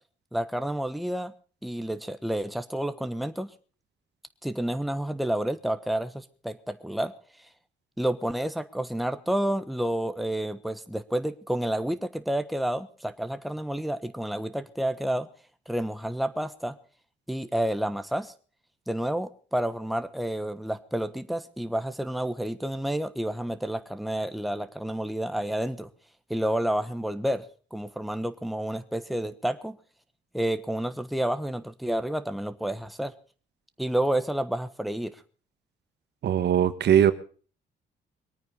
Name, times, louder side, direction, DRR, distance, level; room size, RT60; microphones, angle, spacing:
voice 1, 0.3-1.3 1.6-3.5 4.4-7.1 8.0-15.3 15.7-16.7 17.3-18.3 18.9-25.9 26.3-27.4 27.7-29.8 30.3-33.1 33.8-35.2, right 1 dB, ahead, 10 dB, 1.2 m, -30 dB
voice 2, 36.2-37.1, right 9 dB, 65° right, 12 dB, 1.2 m, -20 dB
22.5 x 9.3 x 5.5 m, 0.41 s
cardioid pair, 85°, 19 cm